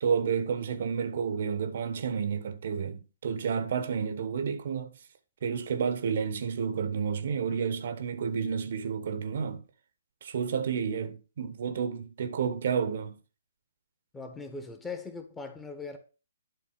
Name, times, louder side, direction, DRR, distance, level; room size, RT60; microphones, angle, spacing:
voice 1, 0.0-4.9 5.4-9.6 10.2-13.2, right 6 dB, 50° right, 1.2 m, -30 dB
voice 2, 14.1-16.0, left 4 dB, 10° left, 1.4 m, -40 dB
11.5 x 3.9 x 5.7 m
figure-of-eight pair, 125°, 0 cm